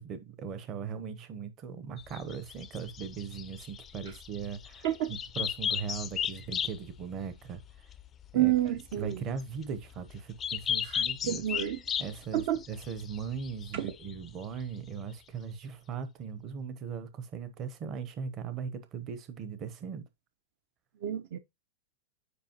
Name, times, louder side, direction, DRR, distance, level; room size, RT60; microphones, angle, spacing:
voice 1, 0.0-7.6 8.3-8.5 9.0-11.4 12.0-20.1, right 6 dB, 25° right, 0.9 m, -39 dB
sound 1, 2.0-14.9, left 8 dB, 15° left, 0.4 m, -36 dB
voice 2, 8.3-9.2 10.9-11.8 12.3-12.6 13.7-13.9 21.0-21.4, right 13 dB, 50° right, 0.7 m, -29 dB
8.2 x 5.2 x 3.0 m
supercardioid pair, 165°, 0 cm